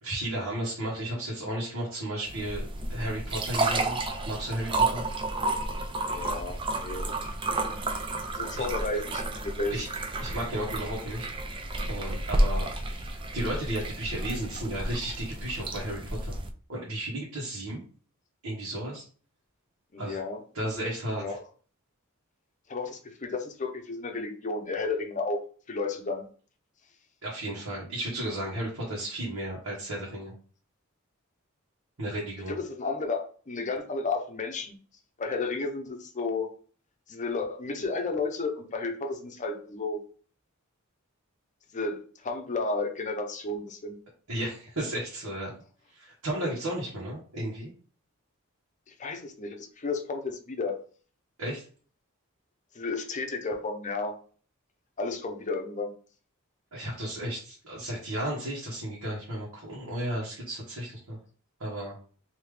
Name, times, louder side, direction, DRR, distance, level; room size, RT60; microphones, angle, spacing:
voice 1, 0.0-5.0 8.5-8.7 9.7-9.9 10.2-11.3 11.9-16.4 16.7-17.8 18.4-19.0 20.0-20.2 20.5-21.2 27.2-30.3 32.0-32.5 44.3-45.5 45.9-47.7 51.4-51.6 56.7-61.2 61.6-62.0, right 1 dB, 85° right, -6 dB, 1.3 m, -34 dB
sound 1, 2.3-16.5, right 2 dB, 25° right, 0.4 m, -31 dB
voice 2, 6.0-7.1 7.5-7.8 8.3-9.8 19.9-20.4 21.2-21.4 22.7-25.4 25.7-26.2 32.5-34.8 35.2-36.5 37.1-40.0 41.7-44.0 48.9-50.8 52.7-54.2 55.0-55.9, left 3 dB, 35° left, 5 dB, 0.6 m, -32 dB
3.5 x 2.8 x 3.2 m, 0.42 s
head